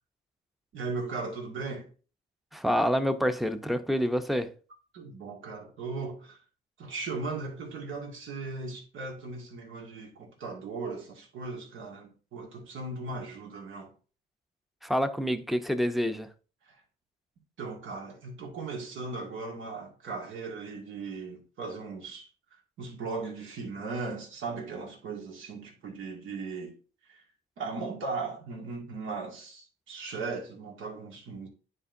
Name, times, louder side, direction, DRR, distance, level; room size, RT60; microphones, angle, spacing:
voice 1, 0.7-1.9 4.9-6.4 6.8-13.9 16.6-16.8 17.6-22.3 22.8-26.7 27.1-27.2 27.6-31.5, right 3 dB, 75° right, 2.0 m, -37 dB
voice 2, 2.5-4.5 14.8-16.3, equal, ahead, 0.6 m, -27 dB
9.9 x 4.4 x 2.6 m
cardioid pair, 90°, 20 cm